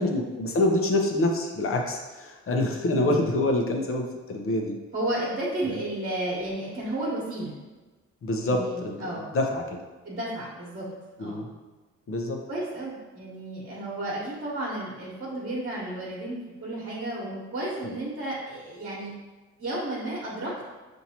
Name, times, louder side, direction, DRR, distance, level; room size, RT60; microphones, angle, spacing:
voice 1, 0.0-4.8 5.7-5.8 8.2-9.8 11.2-11.5 12.1-12.4 17.8-18.0, left 1 dB, 45° left, 2 dB, 0.8 m, -26 dB
voice 2, 4.9-7.5 8.4-9.3 10.0-10.9 11.2-11.4 12.5-19.1 19.6-20.5, right 1 dB, 40° right, -6 dB, 1.2 m, -32 dB
5.7 x 2.7 x 2.9 m, 1.3 s
cardioid pair, 90°, 30 cm